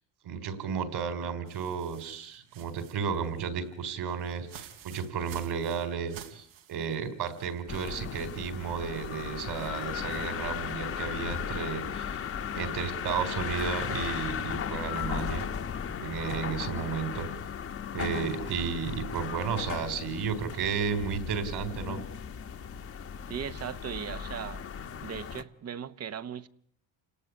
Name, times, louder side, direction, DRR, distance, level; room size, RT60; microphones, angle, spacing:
voice 1, 0.2-12.2 12.5-15.4 16.0-17.3 17.9-22.0, right 6 dB, 55° right, 4.4 m, -33 dB
sound 1, 1.5-7.7 8.1-8.2 8.9-10.3, right 9 dB, 75° right, 3.7 m, -52 dB
sound 2, 7.7-25.4, left 7 dB, 30° left, 1.3 m, -36 dB
voice 2, 23.3-24.6 25.0-26.5, right 8 dB, 35° right, 1.1 m, -38 dB
29.5 x 18.5 x 9.9 m
cardioid pair, 145°, 46 cm